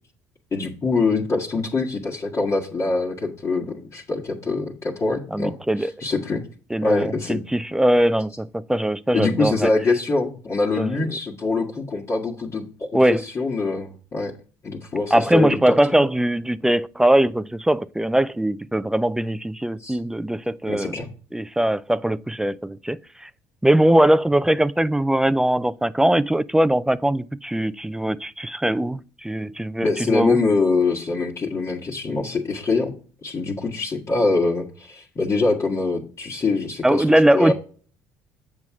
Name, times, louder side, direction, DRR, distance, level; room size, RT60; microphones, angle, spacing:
voice 1, 0.5-6.4 6.8-7.4 9.1-14.3 14.6-16.0 19.8-20.0 20.7-21.1 29.8-33.0 33.2-37.5, left 3 dB, 40° left, 1.6 m, -24 dB
voice 2, 5.3-5.9 6.7-9.7 10.8-11.0 12.9-13.2 15.1-20.9 21.3-23.3 23.6-30.4 36.8-37.5, right 1 dB, 5° right, 0.4 m, -21 dB
7.5 x 5.9 x 3.6 m
supercardioid pair, 75°, 8 cm